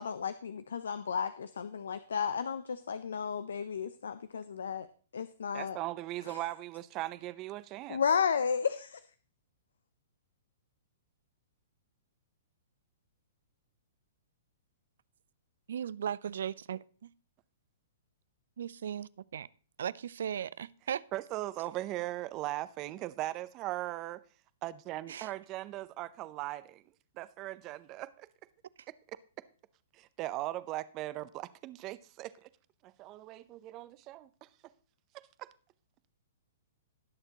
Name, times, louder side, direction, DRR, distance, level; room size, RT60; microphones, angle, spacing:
voice 1, 0.0-4.9 5.1-5.8 6.3-6.4 7.9-9.0, left 6 dB, 80° left, 0.6 m, -33 dB
voice 2, 5.5-8.0 21.1-24.2 24.6-26.8 27.2-28.3 29.9-32.5 32.8-34.5 35.4-35.5, right 16 dB, 35° right, 0.7 m, -39 dB
voice 3, 15.7-17.1 18.6-19.1 19.3-19.5 19.8-21.0 25.1-25.3, right 9 dB, 70° right, 0.4 m, -37 dB
19.5 x 6.7 x 3.0 m
hypercardioid pair, 130°, 0 cm